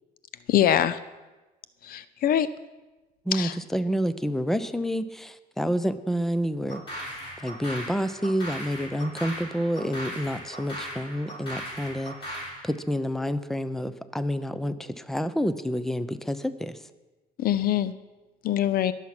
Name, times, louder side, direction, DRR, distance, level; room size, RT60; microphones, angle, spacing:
voice 1, 0.5-1.0 1.8-2.5 3.3-3.6 17.4-17.9 18.4-18.9, left 11 dB, 60° left, 16 dB, 0.6 m, -23 dB
voice 2, 3.3-7.0 7.4-12.4 12.6-16.8, equal, ahead, 13 dB, 0.7 m, -29 dB
sound 1, 6.7-12.6, equal, 30° left, 6.4 m, -38 dB
21.5 x 7.4 x 6.1 m, 1.2 s
cardioid pair, 110°, 17 cm